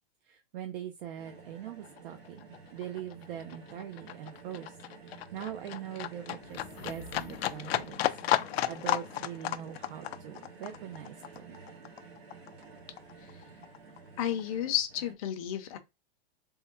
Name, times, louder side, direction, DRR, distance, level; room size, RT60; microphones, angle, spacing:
voice 1, 0.2-4.8 5.0-8.1 8.4-11.6, right 10 dB, 65° right, 0.6 m, -42 dB
sound 1, 1.2-15.1, right 4 dB, 90° right, 1.3 m, -52 dB
Livestock farm animals working animals, 1.3-1.4 1.7-12.7 13.0-14.0 14.3-14.4, left 13 dB, 80° left, 0.5 m, -34 dB
sound 2, 6.4-7.9, equal, 10° right, 0.3 m, -51 dB
voice 2, 14.2-15.8, left 10 dB, 35° left, 0.6 m, -32 dB
3.6 x 2.1 x 4.3 m
supercardioid pair, 160°, 31 cm